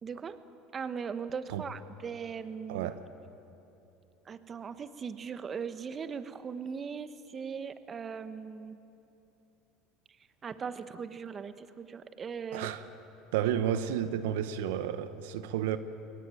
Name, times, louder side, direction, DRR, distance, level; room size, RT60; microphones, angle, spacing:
voice 1, 0.0-0.4 0.7-2.9 4.2-8.8 10.4-12.7, right 6 dB, 35° right, 11 dB, 1.2 m, -39 dB
voice 2, 2.7-3.1 12.5-12.9 13.3-15.8, right 10 dB, 80° right, 12 dB, 1.0 m, -31 dB
22.5 x 19.0 x 9.2 m, 2.9 s
supercardioid pair, 90°, 0 cm